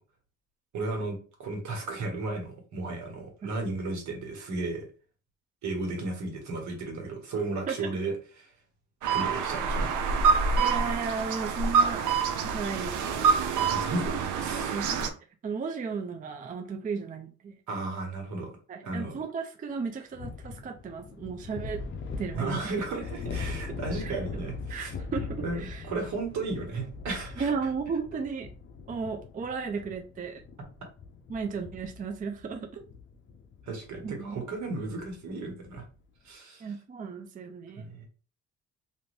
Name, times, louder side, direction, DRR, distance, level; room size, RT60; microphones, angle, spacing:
voice 1, 0.7-4.9 5.6-8.5 9.1-9.9 13.6-14.8 17.7-18.5 18.8-19.1 22.3-24.9 25.4-27.5 33.6-35.8 36.2-36.7 37.8-38.1, right 3 dB, 70° right, 2 dB, 1.3 m, -34 dB
sound 1, 9.0-15.1, right 5 dB, 85° right, 0.6 m, -26 dB
voice 2, 10.6-12.1 12.5-13.4 14.7-15.1 15.4-17.6 18.7-21.8 22.2-22.7 23.3-24.1 24.7-25.9 27.4-28.5 28.9-30.4 31.3-32.7 34.0-34.4 36.6-37.8, right 5 dB, 30° right, 4 dB, 0.4 m, -35 dB
sound 2, 20.1-36.0, left 4 dB, 40° left, 0.5 m, -41 dB
2.6 x 2.5 x 3.3 m, 0.37 s
cardioid pair, 90°, 30 cm